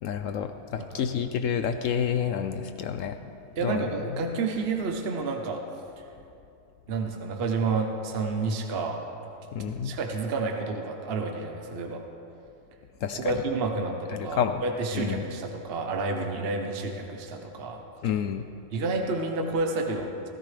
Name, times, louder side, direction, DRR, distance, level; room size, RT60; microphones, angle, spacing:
voice 1, 0.0-3.2 3.6-3.9 9.5-9.9 13.0-13.3 14.1-14.6 14.9-15.3 18.0-18.5, left 8 dB, 70° left, 8 dB, 0.8 m, -29 dB
voice 2, 3.6-5.6 6.9-9.0 9.8-12.0 13.1-17.8 18.7-20.3, right 3 dB, 45° right, 3 dB, 1.1 m, -30 dB
17.0 x 14.5 x 3.4 m, 2.7 s
omnidirectional pair, 1.7 m